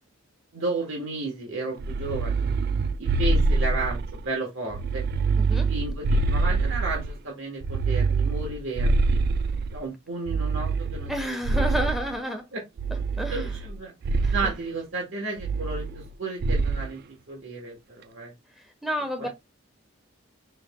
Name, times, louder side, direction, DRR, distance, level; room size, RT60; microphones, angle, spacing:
voice 1, 0.5-2.4 3.0-5.0 5.5-9.2 9.7-11.9 12.5-12.6 13.3-13.9 14.3-17.0 17.3-18.3 19.2-19.3, right 3 dB, 70° right, 1.2 m, -33 dB
sound 1, 1.8-4.2 4.7-7.1 7.6-9.8 10.3-12.1 12.8-13.7 14.0-14.5 15.4-16.1 16.4-16.9, right 3 dB, 50° right, 0.3 m, -25 dB
voice 2, 5.4-5.7 11.1-12.4 13.2-13.5 14.2-14.5 18.8-19.3, equal, ahead, 1.0 m, -30 dB
5.2 x 3.3 x 2.2 m
head